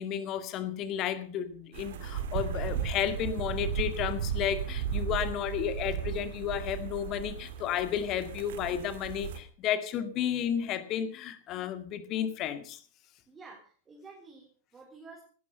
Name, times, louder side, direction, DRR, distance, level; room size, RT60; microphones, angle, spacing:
voice 1, 0.0-12.8, left 9 dB, 35° left, 11 dB, 2.0 m, -32 dB
sound 1, 1.7-9.4, right 8 dB, 55° right, 2.1 m, -35 dB
voice 2, 13.3-15.2, right 4 dB, 20° right, 0 dB, 4.1 m, -51 dB
17.5 x 12.5 x 5.6 m, 0.43 s
figure-of-eight pair, 90°, 0 cm